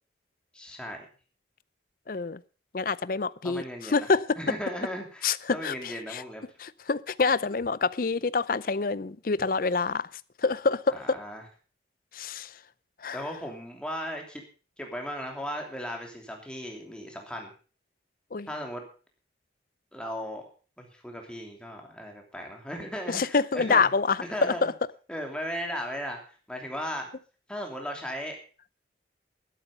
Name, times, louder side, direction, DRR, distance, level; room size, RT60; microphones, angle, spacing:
voice 1, 0.5-1.0 3.4-4.1 4.4-6.4 10.9-11.4 13.1-14.4 14.8-17.5 18.5-18.8 19.9-20.4 20.8-23.9 24.3-24.7 25.1-26.2 26.5-27.1 27.5-28.4, equal, 5° left, 2.9 m, -36 dB
voice 2, 2.1-2.4 2.7-4.4 5.2-6.2 6.6-10.1 10.4-11.2 12.1-12.5 13.0-13.2 18.3-18.5 23.1-24.7, left 4 dB, 50° left, 0.5 m, -27 dB
12.5 x 11.5 x 5.4 m
head